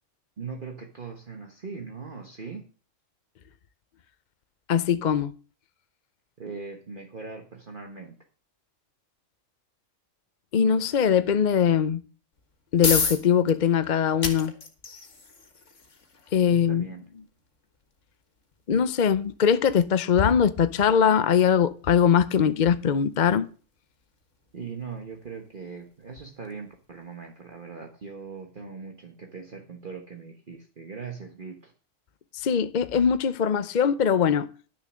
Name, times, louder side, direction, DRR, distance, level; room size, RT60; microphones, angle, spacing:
voice 1, 0.4-2.7 6.4-8.2 16.5-17.0 24.5-31.7, right 5 dB, 40° right, 1.4 m, -40 dB
voice 2, 4.7-5.3 10.5-12.0 12.7-14.5 16.3-16.9 18.7-23.5 32.4-34.5, left 7 dB, 50° left, 0.6 m, -21 dB
sound 1, 12.3-27.2, left 4 dB, 65° left, 2.0 m, -37 dB
11.5 x 6.7 x 6.3 m
omnidirectional pair, 1.3 m